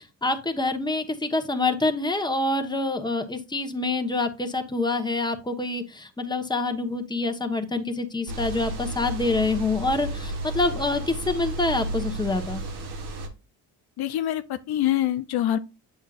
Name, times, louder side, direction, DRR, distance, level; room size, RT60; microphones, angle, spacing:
voice 1, 0.0-12.6, left 2 dB, 10° left, 1.2 m, -26 dB
sound 1, 8.3-13.3, right 1 dB, 70° right, 1.6 m, -33 dB
voice 2, 14.0-15.6, left 12 dB, 65° left, 0.6 m, -25 dB
7.9 x 6.4 x 2.5 m
supercardioid pair, 70°, 41 cm